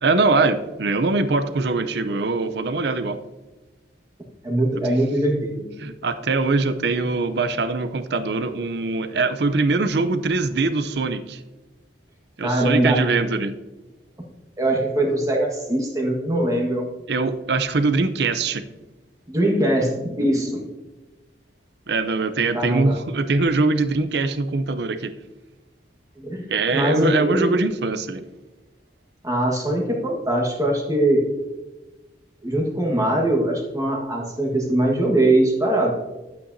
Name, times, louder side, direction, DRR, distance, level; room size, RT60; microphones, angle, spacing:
voice 1, 0.0-3.2 5.8-11.4 12.4-13.5 17.1-18.6 21.9-25.1 26.5-28.2, right 3 dB, 65° right, 11 dB, 0.6 m, -22 dB
voice 2, 4.4-5.7 12.4-13.0 14.6-16.9 19.3-20.6 22.5-23.0 26.2-26.5 26.7-27.5 29.2-31.2 32.4-35.9, right 1 dB, 20° right, -1 dB, 1.5 m, -21 dB
11.5 x 8.7 x 2.7 m, 1.1 s
head